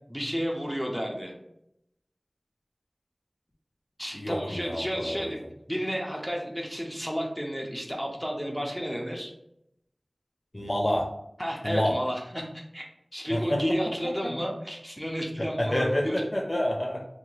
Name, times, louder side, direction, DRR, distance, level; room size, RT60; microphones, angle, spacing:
voice 1, 0.1-1.3 4.0-5.4 5.7-9.3 11.4-12.9 13.1-16.2, equal, 5° right, 0 dB, 0.6 m, -32 dB
voice 2, 4.1-5.3 10.5-11.1 11.6-12.0 13.3-13.6 14.2-14.3 15.4-17.0, left 1 dB, 35° left, 1 dB, 0.5 m, -28 dB
2.7 x 2.3 x 3.1 m, 0.78 s
wide cardioid pair, 50°, 0 cm